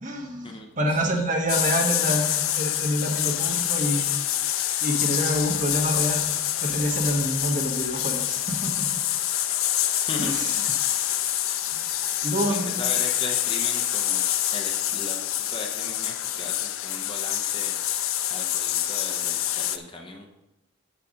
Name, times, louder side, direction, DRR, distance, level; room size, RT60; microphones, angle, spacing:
voice 1, 0.0-4.1 4.8-6.3 6.6-8.9 10.2-10.6 11.7-11.9 12.2-12.7, equal, 35° right, 1 dB, 1.2 m, -27 dB
sound 1, 1.5-19.8, left 12 dB, 75° left, 0.5 m, -26 dB
voice 2, 10.1-10.6 12.4-14.2 14.5-15.2 15.5-20.3, left 2 dB, 25° left, 2 dB, 0.8 m, -37 dB
6.9 x 6.9 x 5.2 m, 0.92 s
head